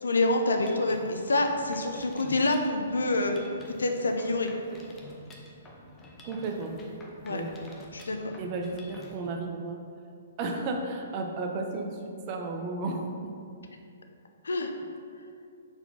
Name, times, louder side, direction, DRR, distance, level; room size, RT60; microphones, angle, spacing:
voice 1, 0.0-3.4 3.8-4.5 7.2-7.4 7.9-8.4 14.4-14.7, left 2 dB, 80° left, 4 dB, 0.6 m, -27 dB
Mechanisms, 0.6-9.2, left 1 dB, 20° left, 0.8 m, -49 dB
voice 2, 6.2-6.7 7.3-7.5 8.4-9.8 10.4-13.1, right 3 dB, 35° right, 2 dB, 0.8 m, -33 dB
4.5 x 4.3 x 5.4 m, 2.4 s
figure-of-eight pair, 125°, 0 cm